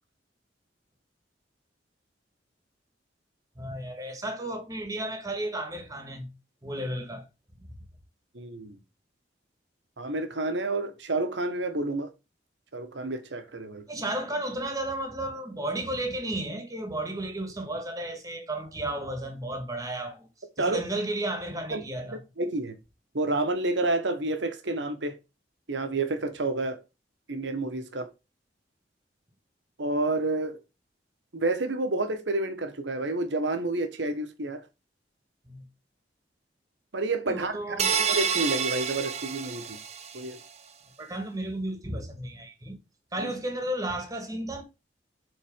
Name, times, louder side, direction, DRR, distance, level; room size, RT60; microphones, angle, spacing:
voice 1, 3.6-6.3 6.6-7.2 13.9-20.3 20.6-22.2 35.4-35.6 37.3-38.0 41.0-42.8 43.1-44.6, right 1 dB, 20° right, 1.5 m, -33 dB
voice 2, 8.3-8.8 10.0-12.1 12.7-13.8 20.6-20.8 21.7-21.8 22.1-22.7 23.1-25.2 25.7-26.8 27.3-28.1 29.8-30.6 31.3-34.6 36.9-37.8 38.1-39.8 40.1-40.4 43.2-43.3, right 2 dB, 80° right, 1.3 m, -29 dB
sound 1, 37.8-40.3, right 7 dB, 35° right, 0.7 m, -28 dB
7.4 x 4.2 x 5.1 m
head